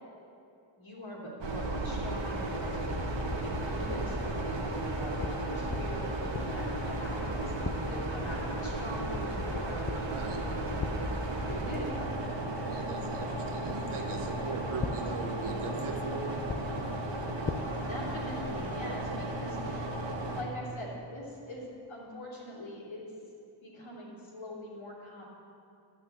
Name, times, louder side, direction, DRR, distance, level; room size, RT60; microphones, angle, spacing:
voice 1, 0.8-7.5 7.9-10.7 11.5-12.2 17.6-19.9 20.3-23.0 23.6-25.2, left 1 dB, 70° left, -4 dB, 3.1 m, -42 dB
sound 1, 1.4-20.4, right 2 dB, 65° right, 1.4 m, -34 dB
sound 2, 2.1-19.0, left 4 dB, 25° left, 0.5 m, -42 dB
voice 2, 12.7-16.4, right 4 dB, 85° right, 2 dB, 1.4 m, -39 dB
11.5 x 6.1 x 8.6 m, 2.6 s
wide cardioid pair, 105°, 48 cm